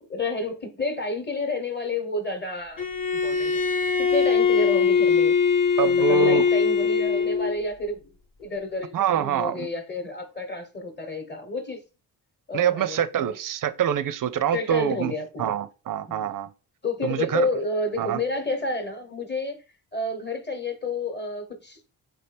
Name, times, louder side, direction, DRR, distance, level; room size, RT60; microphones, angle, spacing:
voice 1, 0.1-3.6 4.0-5.3 5.8-8.1 8.4-11.8 12.5-13.3 14.5-15.6 16.1-16.3 16.8-19.6 19.9-21.8, left 2 dB, 20° left, 1.2 m, -30 dB
Bowed string instrument, 2.8-7.6, left 6 dB, 45° left, 1.0 m, -21 dB
voice 2, 5.8-6.5 8.9-9.7 12.5-15.1 15.4-16.5 17.0-17.5 18.0-18.2, right 8 dB, 45° right, 0.5 m, -25 dB
3.8 x 2.9 x 3.3 m
supercardioid pair, 40°, 47 cm